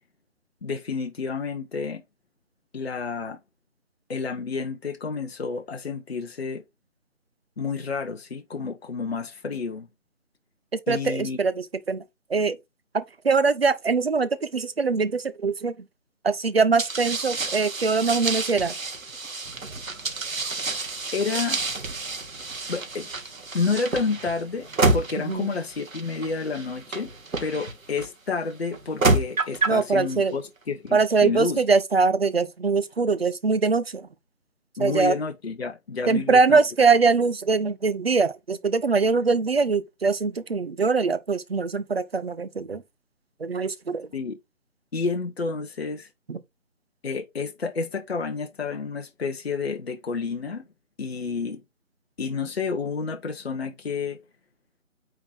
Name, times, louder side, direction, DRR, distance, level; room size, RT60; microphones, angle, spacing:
voice 1, 0.6-2.0 2.7-3.4 4.1-6.6 7.6-9.9 10.9-11.4 21.1-21.6 22.7-23.1 23.5-27.1 27.4-31.6 34.8-36.6 44.1-44.4 44.9-46.1 47.0-50.6 51.0-51.6 52.2-54.2, left 4 dB, 50° left, 1.0 m, -30 dB
voice 2, 10.9-11.5 11.9-12.0 12.3-12.6 12.9-15.7 16.2-18.7 25.3-25.5 29.7-30.3 30.9-34.1 34.8-35.1 36.1-42.8 43.4-44.1 46.3-46.4, right 4 dB, 45° right, 0.8 m, -22 dB
sound 1, 16.8-28.1 28.7-29.8, right 3 dB, 80° right, 1.7 m, -28 dB
9.2 x 3.8 x 3.5 m
figure-of-eight pair, 160°, 40 cm